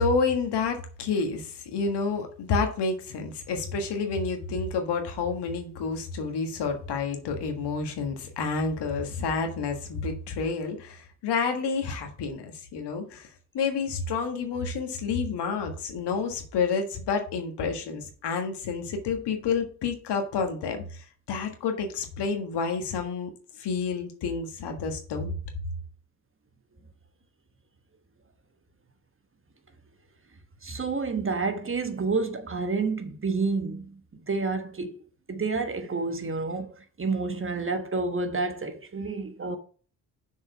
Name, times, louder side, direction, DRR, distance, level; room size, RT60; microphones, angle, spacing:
voice 1, 0.0-13.3 13.5-23.3 23.6-25.4, left 4 dB, 60° left, 1.6 m, -29 dB
voice 2, 30.6-35.0 35.3-39.6, right 4 dB, 25° right, 1.2 m, -29 dB
6.2 x 4.8 x 5.6 m
hypercardioid pair, 45°, 47 cm